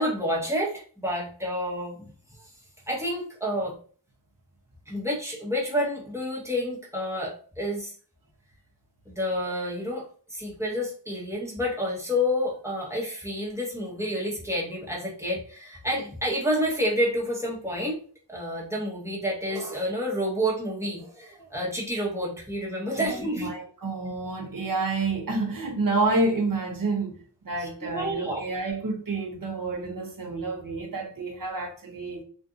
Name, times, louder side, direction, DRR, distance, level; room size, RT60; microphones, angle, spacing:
voice 1, 0.0-2.1 2.9-3.7 4.9-7.9 9.1-10.0 10.3-18.0 18.3-23.5 27.6-28.4, equal, 5° right, 1.0 m, -29 dB
voice 2, 23.0-27.2 27.4-32.2, right 3 dB, 50° right, 0.8 m, -29 dB
2.5 x 2.5 x 2.4 m
wide cardioid pair, 45°, 43 cm